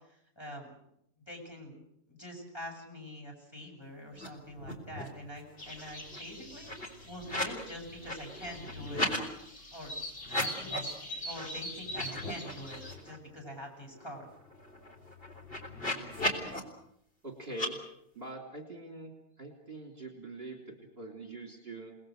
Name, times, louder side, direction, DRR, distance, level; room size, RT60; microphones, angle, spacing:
voice 1, 0.1-0.7 1.3-1.8 2.1-9.1 9.7-9.9 10.4-14.3, equal, 15° left, 0 dB, 7.5 m, -45 dB
sound 1, 4.1-4.3 4.5-5.2 5.5-7.6 7.9-9.2 10.2-10.9 11.3-11.5 11.8-13.2 13.6-13.7 13.9-16.6 17.5-17.7, left 1 dB, 40° left, 4.1 m, -37 dB
sound 2, 5.6-12.9, left 1 dB, 60° left, 3.7 m, -43 dB
voice 2, 17.2-17.8 18.2-19.1 19.4-22.0, right 2 dB, 40° right, 3 dB, 3.7 m, -43 dB
29.0 x 20.0 x 6.6 m, 0.76 s
omnidirectional pair, 1.5 m